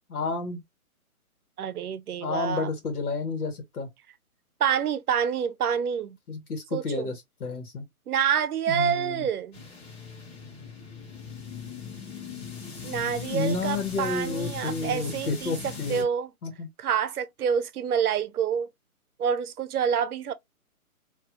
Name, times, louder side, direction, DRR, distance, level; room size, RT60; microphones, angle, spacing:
voice 1, 0.1-0.6 2.2-3.9 6.3-7.8 8.7-9.3 13.3-16.0 16.4-16.7, left 4 dB, 75° left, 1.5 m, -31 dB
voice 2, 1.6-2.7 4.6-6.2 6.7-7.1 8.1-9.6 12.8-16.3 16.8-18.7 19.2-20.3, right 8 dB, 85° right, 0.7 m, -27 dB
sound 1, 9.5-16.0, left 6 dB, 45° left, 1.5 m, -39 dB
2.8 x 2.4 x 2.9 m
hypercardioid pair, 170°, 44 cm